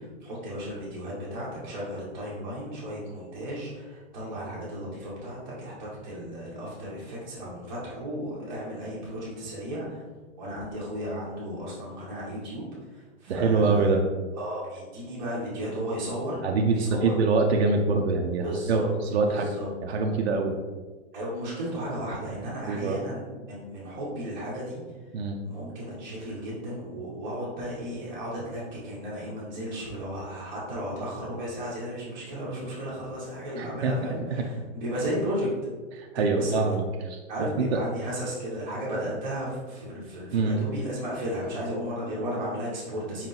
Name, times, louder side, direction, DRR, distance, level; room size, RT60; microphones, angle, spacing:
voice 1, 0.0-10.0 10.4-13.9 14.4-16.4 16.7-17.1 18.4-18.9 19.2-19.7 21.1-24.8 25.4-35.5 36.1-36.6 37.3-43.3, equal, 15° right, -11 dB, 0.7 m, -34 dB
voice 2, 13.3-14.0 16.4-19.5 19.8-20.5 22.6-23.0 25.1-25.4 33.6-33.9 34.3-34.4 35.9-36.8 37.1-37.8 40.3-40.6, right 4 dB, 60° right, 1 dB, 0.5 m, -25 dB
4.8 x 2.9 x 3.8 m, 1.4 s
hypercardioid pair, 175°, 37 cm